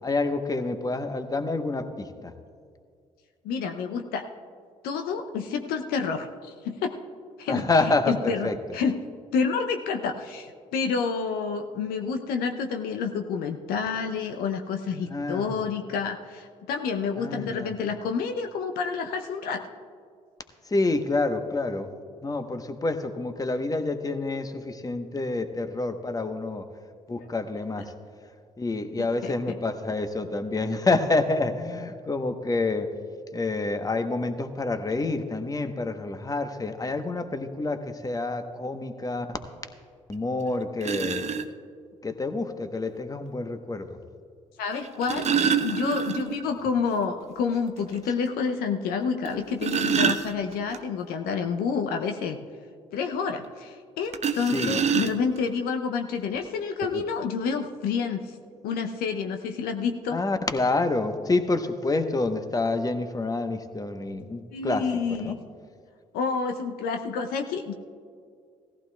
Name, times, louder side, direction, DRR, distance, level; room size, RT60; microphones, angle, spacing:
voice 1, 0.0-2.3 7.5-8.6 15.1-15.5 17.2-17.7 20.7-21.9 22.2-26.6 27.1-27.8 28.6-32.9 33.3-39.4 40.1-41.3 42.0-44.0 54.5-54.8 60.1-64.8 65.2-65.3, left 3 dB, 20° left, 8 dB, 1.0 m, -28 dB
voice 2, 3.4-4.2 4.8-7.0 7.4-9.0 9.3-19.6 27.2-27.3 29.0-29.6 44.6-45.3 45.6-52.4 52.9-58.4 58.6-60.2 64.5-65.3 66.1-67.7, left 5 dB, 70° left, 6 dB, 0.7 m, -29 dB
sound 1, 40.1-40.2 40.8-41.5 42.8-42.9 44.7-46.5 46.8-46.9 47.3-47.4 47.9-48.0 49.3-50.8 54.1-55.5 56.4-56.5 56.8-57.0, right 7 dB, 45° right, 0.7 m, -26 dB
17.0 x 14.5 x 2.3 m, 2.2 s
hypercardioid pair, 50°, 16 cm